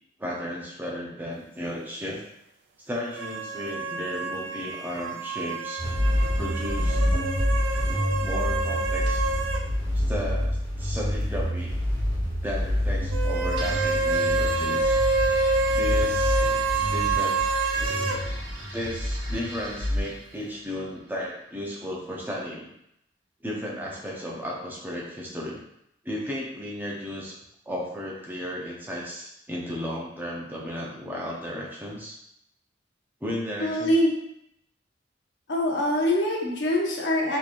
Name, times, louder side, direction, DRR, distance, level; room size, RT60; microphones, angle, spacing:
voice 1, 0.2-2.2 2.9-5.8 6.4-7.0 8.2-9.2 9.9-11.8 12.4-15.0 15.8-17.4 17.8-18.3 18.7-22.7 23.4-25.6 26.0-27.4 27.7-32.2 33.2-33.9, equal, 10° right, -4 dB, 0.6 m, -34 dB
sound 1, 3.1-9.7 10.0-10.1 13.1-18.2, right 3 dB, 85° right, 0.4 m, -27 dB
sound 2, 5.8-20.0, left 1 dB, 20° left, 1.1 m, -27 dB
sound 3, 13.5-21.3, right 1 dB, 65° right, 1.0 m, -41 dB
voice 2, 33.6-34.1 35.5-37.4, left 1 dB, 75° left, -1 dB, 0.8 m, -24 dB
3.8 x 2.9 x 2.5 m, 0.77 s
head